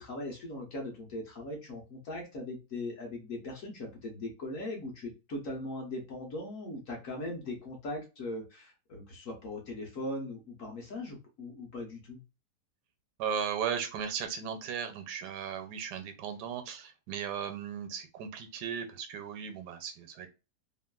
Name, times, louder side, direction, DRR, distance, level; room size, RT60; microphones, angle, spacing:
voice 1, 0.0-12.2, left 1 dB, 55° left, 1 dB, 1.1 m, -39 dB
voice 2, 13.2-20.3, right 7 dB, 85° right, 7 dB, 1.2 m, -36 dB
3.1 x 2.5 x 2.2 m, 0.29 s
omnidirectional pair, 1.8 m